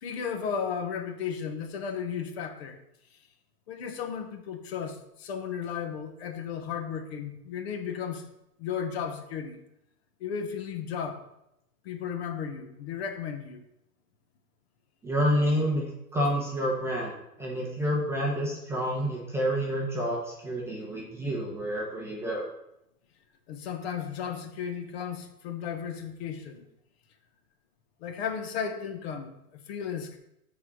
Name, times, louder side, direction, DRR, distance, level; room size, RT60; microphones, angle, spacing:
voice 1, 0.0-2.8 3.1-3.2 3.7-8.3 8.6-9.6 10.2-11.2 11.8-13.6 23.5-26.6 28.0-30.2, left 7 dB, 40° left, 6 dB, 1.1 m, -34 dB
voice 2, 15.0-15.9 16.1-17.1 17.4-22.5, equal, 5° right, -3 dB, 0.9 m, -28 dB
8.7 x 4.2 x 4.8 m, 0.83 s
hypercardioid pair, 145°, 47 cm